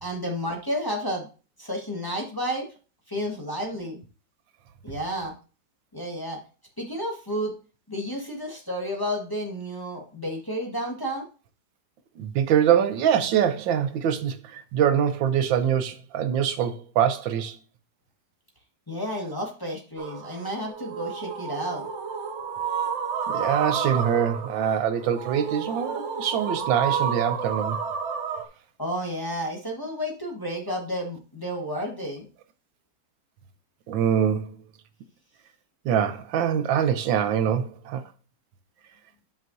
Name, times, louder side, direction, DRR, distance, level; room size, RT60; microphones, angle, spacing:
voice 1, 0.0-1.3 1.6-2.7 3.1-4.0 4.8-5.3 5.9-6.4 6.8-7.5 7.9-11.2 18.9-21.8 28.8-32.3, equal, 15° left, 1.3 m, -31 dB
voice 2, 12.2-17.6 23.3-27.8 33.9-34.5 35.8-38.0, right 9 dB, 85° right, 1.5 m, -24 dB
sound 1, 20.0-28.5, right 6 dB, 55° right, 0.8 m, -31 dB
9.1 x 5.6 x 2.7 m
omnidirectional pair, 2.0 m